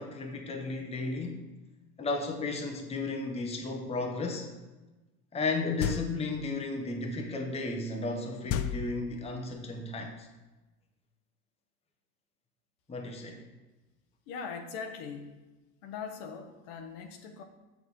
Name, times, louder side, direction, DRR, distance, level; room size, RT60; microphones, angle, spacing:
voice 1, 0.0-1.4 2.0-4.5 5.3-10.3 12.9-13.4, left 3 dB, 15° left, 3 dB, 1.0 m, -34 dB
sound 1, 5.8-6.4 8.5-9.5, left 9 dB, 35° left, 0.4 m, -34 dB
voice 2, 14.3-15.4 15.8-17.4, left 6 dB, 55° left, 5 dB, 1.2 m, -41 dB
7.2 x 6.2 x 3.7 m, 1.1 s
hypercardioid pair, 95°, 47 cm